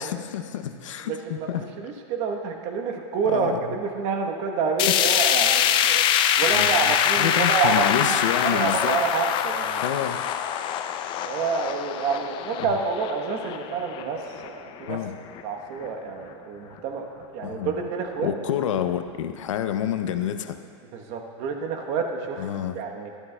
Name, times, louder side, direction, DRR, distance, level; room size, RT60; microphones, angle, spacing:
voice 1, 0.0-1.9 3.3-3.8 4.9-5.0 6.5-9.0 9.8-10.2 12.6-12.8 14.9-15.1 17.4-17.9 18.2-20.6 22.4-22.8, left 10 dB, 80° left, 9 dB, 0.6 m, -29 dB
voice 2, 1.1-1.5 1.8-6.0 6.4-9.9 11.2-15.0 15.4-18.3 20.9-22.5 22.7-23.1, right 5 dB, 45° right, 3 dB, 1.0 m, -28 dB
sound 1, 4.8-15.0 15.4-15.5 15.8-15.9 16.8-16.9, left 10 dB, 30° left, 0.4 m, -24 dB
12.0 x 11.5 x 2.2 m, 2.4 s
hypercardioid pair, 125°, 16 cm